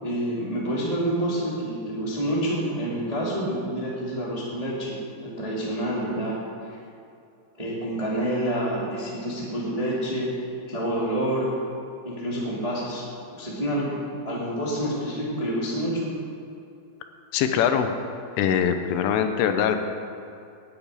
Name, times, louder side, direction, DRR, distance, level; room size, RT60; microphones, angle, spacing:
voice 1, 0.0-5.0 5.2-6.7 7.6-10.3 10.7-11.5 12.0-13.0 13.3-13.9 14.2-16.1, right 1 dB, 15° right, -6 dB, 1.3 m, -28 dB
voice 2, 17.3-17.9 18.4-19.8, left 8 dB, 85° left, 7 dB, 3.3 m, -22 dB
10.5 x 8.9 x 9.7 m, 2.6 s
omnidirectional pair, 5.6 m